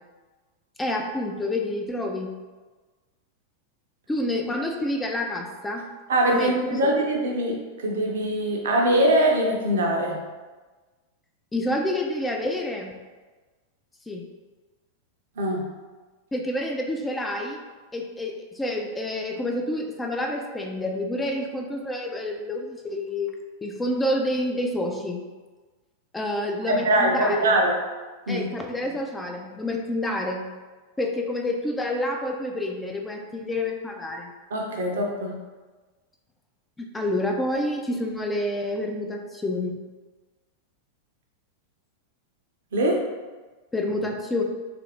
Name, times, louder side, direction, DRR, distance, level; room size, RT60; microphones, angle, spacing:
voice 1, 0.8-2.3 4.1-5.8 6.3-6.8 11.5-12.9 14.1-14.2 16.3-17.6 17.9-23.3 23.6-25.2 26.1-27.5 28.3-30.5 31.0-34.3 36.8-39.8 43.7-44.4, left 1 dB, 10° left, 2 dB, 0.4 m, -28 dB
voice 2, 6.1-10.2 15.4-15.6 26.7-27.8 28.3-28.5 34.5-35.4 42.7-43.0, right 1 dB, 60° right, 0 dB, 0.5 m, -22 dB
3.1 x 2.5 x 2.8 m, 1.3 s
figure-of-eight pair, 90°, 0 cm